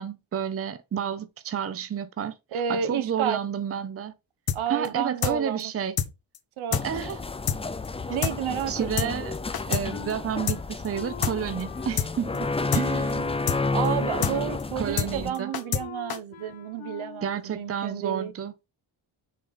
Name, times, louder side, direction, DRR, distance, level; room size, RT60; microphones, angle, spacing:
voice 1, 0.0-4.1 4.7-6.0 6.8-7.2 8.7-9.4 9.7-13.3 14.8-15.5 17.2-18.5, right 8 dB, 30° right, 0.6 m, -30 dB
voice 2, 2.5-3.4 4.5-5.7 6.6-6.8 8.1-9.2 13.7-18.3, right 9 dB, 80° right, 1.0 m, -30 dB
sound 1, 4.5-4.6 4.8-4.9 5.2-5.3 5.6-5.7 6.0-6.1 6.3-6.4 6.7-6.8 7.1-7.2 7.5-7.6 7.8-7.9 8.2-8.3 8.6-8.7 9.0-9.1 9.3-9.8 10.1-10.2 10.5-10.6 10.8-10.9 11.2-11.3 11.6-11.7 12.0-12.1 12.3-12.4 12.7-12.8 13.1-13.2 13.5-13.6 13.8-13.9 14.2-14.3 14.6-14.7 15.0-15.1 15.3-15.8 16.1-16.2, left 8 dB, 50° left, 0.9 m, -26 dB
sound 2, 6.7-15.3, left 3 dB, 15° left, 0.3 m, -31 dB
Wind instrument woodwind instrument, 9.9-17.4, left 10 dB, 75° left, 1.2 m, -45 dB
6.4 x 4.1 x 5.5 m
wide cardioid pair, 165°, 48 cm